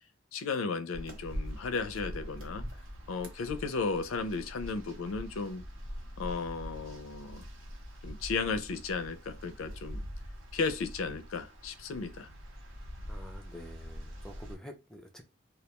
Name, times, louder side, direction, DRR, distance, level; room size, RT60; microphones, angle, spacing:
voice 1, 0.3-2.6 3.1-5.6 6.2-7.5 8.0-10.0 10.5-12.3, left 4 dB, 80° left, 0.4 m, -34 dB
sound 1, 0.9-14.6, equal, 70° right, 0.7 m, -44 dB
voice 2, 13.1-15.2, equal, 5° left, 0.4 m, -48 dB
2.3 x 2.2 x 2.8 m
head